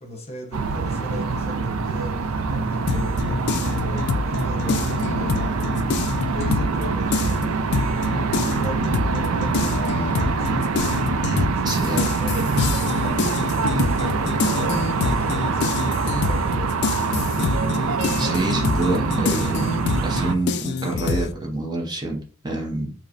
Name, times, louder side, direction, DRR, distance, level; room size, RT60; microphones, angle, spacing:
voice 1, 0.0-5.8 6.3-7.6 8.3-10.6 11.5-16.8, left 1 dB, 30° left, 0.8 m, -38 dB
sound 1, 0.5-20.3, right 4 dB, 85° right, 0.4 m, -24 dB
sound 2, 2.9-6.8 7.1-21.3, left 4 dB, 55° left, 0.3 m, -26 dB
voice 2, 11.6-12.0 18.2-19.7 20.0-22.9, right 2 dB, 20° right, 0.5 m, -27 dB
4.9 x 2.0 x 2.7 m
head